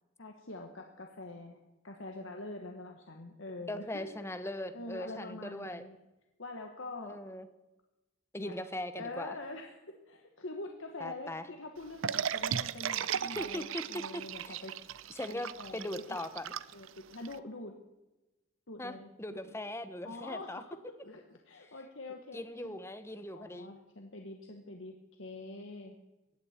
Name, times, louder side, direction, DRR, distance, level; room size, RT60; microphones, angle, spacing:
voice 1, 0.2-1.6 1.8-4.1 4.4-4.5 4.7-6.0 6.4-7.2 8.4-8.5 8.9-14.8 15.2-15.8 16.1-16.2 16.7-17.7 18.7-19.6 20.0-22.8 23.3-26.0, left 2 dB, 65° left, 3 dB, 1.4 m, -45 dB
voice 2, 3.7-5.8 7.0-7.5 8.3-9.3 11.0-11.4 13.4-13.8 14.1-14.6 15.1-16.5 18.8-20.6 22.3-23.7, left 1 dB, 15° left, 11 dB, 0.9 m, -40 dB
sound 1, 12.0-17.4, right 8 dB, 75° right, 0.6 m, -36 dB
18.5 x 15.0 x 4.4 m, 1.0 s
head